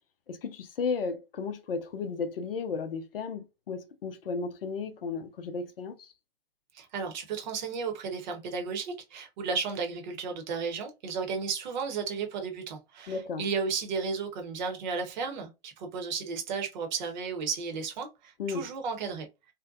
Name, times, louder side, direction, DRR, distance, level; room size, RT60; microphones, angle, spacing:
voice 1, 0.3-6.1 13.1-13.4 18.4-18.7, left 5 dB, 70° left, 0.6 m, -34 dB
voice 2, 6.7-19.3, right 5 dB, 50° right, 0.9 m, -34 dB
2.7 x 2.1 x 2.4 m
figure-of-eight pair, 105°, 30 cm